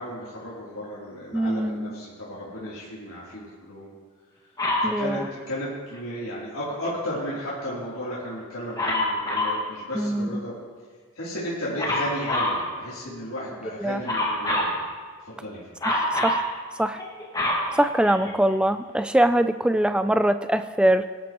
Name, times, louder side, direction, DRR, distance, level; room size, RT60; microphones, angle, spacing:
voice 1, 0.0-3.9 4.8-10.5 11.1-14.8 15.2-15.7, equal, 80° left, -9 dB, 3.2 m, -34 dB
voice 2, 1.3-1.9 4.8-5.2 10.0-10.4 13.8-14.0 15.8-16.4 16.8-17.0 17.7-21.1, right 1 dB, 5° right, 10 dB, 0.3 m, -23 dB
Dog, 4.6-4.9 8.8-9.6 11.8-12.6 14.0-14.8 15.8-16.4 17.0-18.5 19.2-19.3, left 1 dB, 15° left, 1.9 m, -25 dB
19.5 x 11.5 x 3.0 m, 1.5 s
head